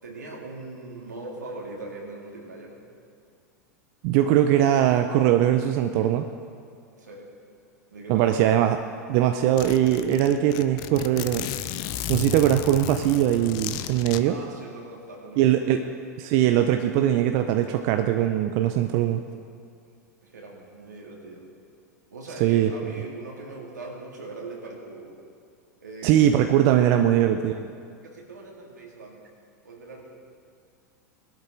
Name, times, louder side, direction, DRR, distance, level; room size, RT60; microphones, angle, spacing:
voice 1, 0.0-2.8 7.0-7.4 7.9-8.5 14.2-15.9 20.2-21.5 22.1-25.2 25.8-27.2 28.0-29.2 29.6-30.0, right 2 dB, 90° right, -2 dB, 3.1 m, -41 dB
voice 2, 4.0-6.2 8.1-8.8 9.1-11.5 12.1-14.4 15.4-15.8 16.2-19.2 22.4-22.7 26.0-27.5, right 11 dB, 50° right, 7 dB, 0.7 m, -21 dB
Zipper (clothing), 8.8-8.9 9.1-9.2 9.6-14.2, left 12 dB, 50° left, 0.7 m, -33 dB
20.0 x 12.0 x 3.9 m, 2.3 s
hypercardioid pair, 95°, 9 cm